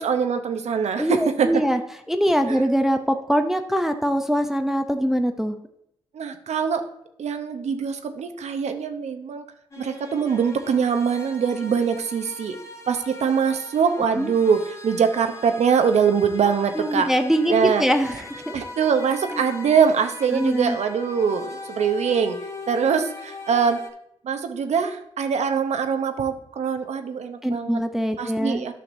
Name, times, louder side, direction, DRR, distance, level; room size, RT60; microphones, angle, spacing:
voice 1, 0.0-1.6 2.5-2.7 6.1-6.8 7.2-9.4 9.8-12.6 12.9-17.1 17.5-17.8 18.5-22.4 22.7-23.8 24.2-27.8 28.2-28.7, right 6 dB, 65° right, 7 dB, 0.7 m, -23 dB
voice 2, 1.0-1.8 2.1-5.6 14.2-14.3 16.8-18.5 19.3-19.4 20.3-20.8 27.4-28.6, equal, 5° right, 7 dB, 0.6 m, -23 dB
sound 1, 9.7-23.9, left 3 dB, 25° left, 1.3 m, -40 dB
9.2 x 5.8 x 2.6 m, 0.77 s
supercardioid pair, 45°, 12 cm